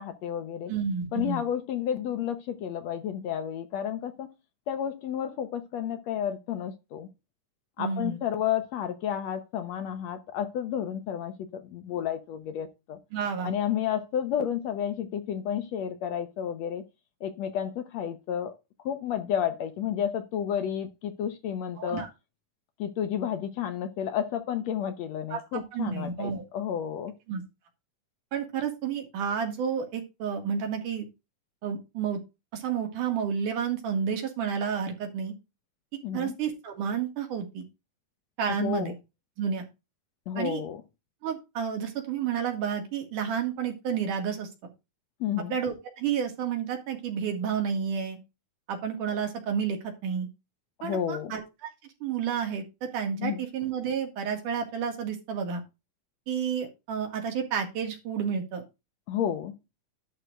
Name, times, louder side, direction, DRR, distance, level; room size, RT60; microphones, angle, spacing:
voice 1, 0.0-0.7 1.1-4.3 4.7-7.1 7.8-13.0 13.4-16.8 17.2-22.0 22.8-27.1 36.0-36.4 38.5-38.9 40.3-40.8 45.2-45.5 50.8-51.3 53.2-53.4 59.1-59.6, left 9 dB, 65° left, 2.0 m, -31 dB
voice 2, 0.7-1.4 7.8-8.2 13.1-13.5 21.8-22.1 25.3-26.4 27.3-27.4 28.3-31.1 31.6-32.2 32.5-35.3 36.1-37.7 38.4-38.9 39.4-39.7 40.4-40.6 41.2-44.7 45.5-48.2 48.7-50.3 50.8-51.7 52.0-55.6 56.3-58.6, right 7 dB, 80° right, 3.6 m, -30 dB
11.0 x 3.8 x 6.6 m
omnidirectional pair, 3.6 m